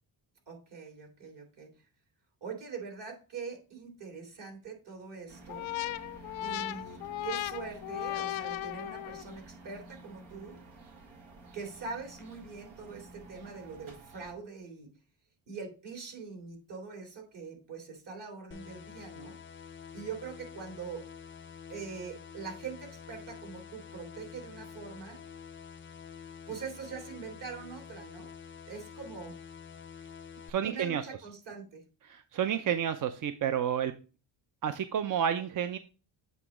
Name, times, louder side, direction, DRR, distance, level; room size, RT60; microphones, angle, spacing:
voice 1, 0.5-1.7 2.4-5.7 6.4-10.6 11.5-14.9 15.5-19.4 19.9-21.0 21.7-25.2 26.5-28.3 28.7-29.4 30.6-31.8, right 5 dB, 60° right, 2 dB, 2.6 m, -43 dB
sound 1, 5.3-14.3, right 2 dB, 85° right, 1.7 m, -51 dB
sound 2, 5.5-9.4, left 14 dB, 75° left, 0.5 m, -36 dB
sound 3, 18.5-30.5, left 7 dB, 25° left, 0.5 m, -48 dB
voice 2, 30.5-31.0 32.1-33.9 34.6-35.8, right 9 dB, 45° right, 9 dB, 0.5 m, -30 dB
8.2 x 3.0 x 4.8 m, 0.35 s
cardioid pair, 75°, 48 cm